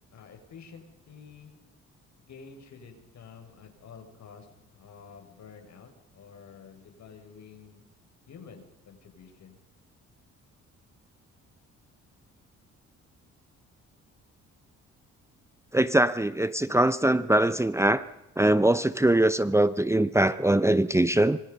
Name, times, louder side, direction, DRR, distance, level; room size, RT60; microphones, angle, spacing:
voice 1, 0.1-1.5 2.2-7.8 8.3-9.6, left 6 dB, 65° left, 5 dB, 6.3 m, -49 dB
voice 2, 15.7-18.0 18.4-21.4, right 1 dB, 10° right, 14 dB, 0.9 m, -22 dB
28.5 x 26.0 x 5.4 m, 0.94 s
cardioid pair, 90°, 30 cm